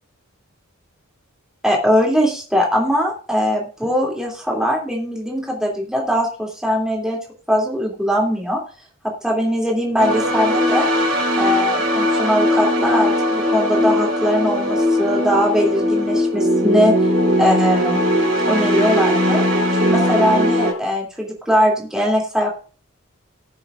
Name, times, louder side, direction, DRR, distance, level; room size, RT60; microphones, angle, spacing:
voice 1, 1.6-7.2 7.5-8.6 9.0-10.9 11.4-16.9 17.4-18.0 18.5-19.4 19.8-22.5, equal, 5° right, -2 dB, 2.7 m, -20 dB
sound 1, 10.0-20.7, equal, 55° right, 3.4 m, -19 dB
19.0 x 7.0 x 2.5 m, 0.38 s
head